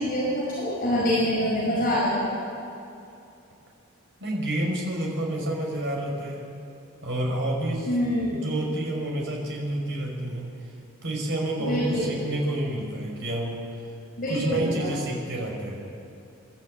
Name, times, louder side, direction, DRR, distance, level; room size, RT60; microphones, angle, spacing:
voice 1, 0.0-2.3 7.9-8.4 11.6-12.1 14.2-14.9, equal, 45° left, -6 dB, 5.5 m, -25 dB
voice 2, 4.2-6.6 7.0-7.9 8.3-10.5 11.0-13.6 14.3-15.9, right 1 dB, 55° right, -1 dB, 5.3 m, -29 dB
30.0 x 12.5 x 8.7 m, 2.6 s
head